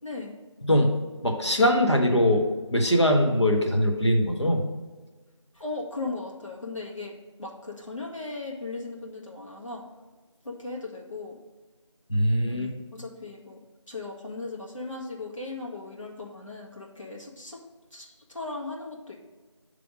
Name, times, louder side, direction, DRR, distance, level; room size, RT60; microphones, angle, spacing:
voice 1, 0.0-0.3 5.5-7.1 7.4-9.9 10.4-11.4 12.5-13.6 13.9-17.6 17.9-19.2, left 3 dB, 85° left, -3 dB, 1.8 m, -37 dB
voice 2, 0.6-1.0 1.2-2.4 2.7-4.6 12.1-12.7, left 1 dB, 65° left, 1 dB, 1.1 m, -22 dB
7.3 x 3.4 x 5.1 m, 1.3 s
figure-of-eight pair, 180°, 16 cm